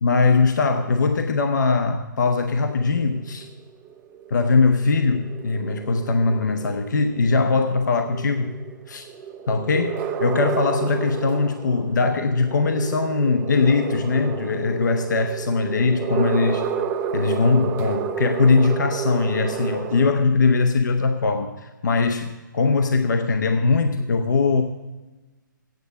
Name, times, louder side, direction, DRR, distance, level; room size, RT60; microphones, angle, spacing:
voice 1, 0.0-3.5 4.3-8.6 8.9-9.1 9.5-16.7 17.1-24.6, left 4 dB, 60° left, 6 dB, 0.8 m, -21 dB
sound 1, 2.7-20.0, right 7 dB, 20° right, 0.5 m, -31 dB
9.3 x 6.7 x 6.6 m, 1.2 s
figure-of-eight pair, 140°, 11 cm